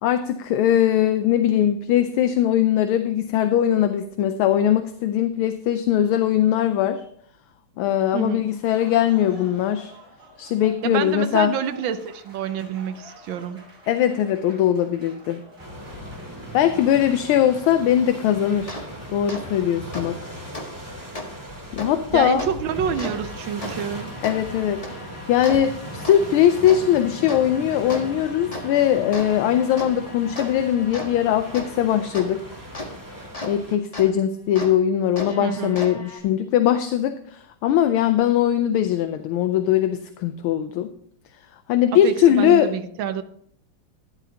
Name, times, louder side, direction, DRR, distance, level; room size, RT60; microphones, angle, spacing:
voice 1, 0.0-7.0 7.8-9.9 10.4-11.5 13.9-15.4 16.5-18.8 19.1-20.2 21.7-22.4 24.2-32.4 33.4-40.9 41.7-42.7, left 10 dB, 75° left, 9 dB, 1.4 m, -20 dB
voice 2, 8.1-8.4 10.8-13.6 22.1-24.1 35.4-35.7 42.0-43.2, right 8 dB, 70° right, 11 dB, 1.3 m, -27 dB
Applause, 8.4-17.8, equal, 40° right, 2.7 m, -48 dB
sound 1, 15.6-33.8, equal, 10° right, 2.1 m, -38 dB
sound 2, 18.7-18.8 19.3-19.4 19.9-20.0 20.5-20.7 21.2-21.3 21.8-21.9 22.4-22.5 22.9-33.5 33.9-34.1 34.6-34.7 35.2-36.2, left 1 dB, 20° left, 1.4 m, -36 dB
12.5 x 11.0 x 2.8 m, 0.66 s
omnidirectional pair, 2.4 m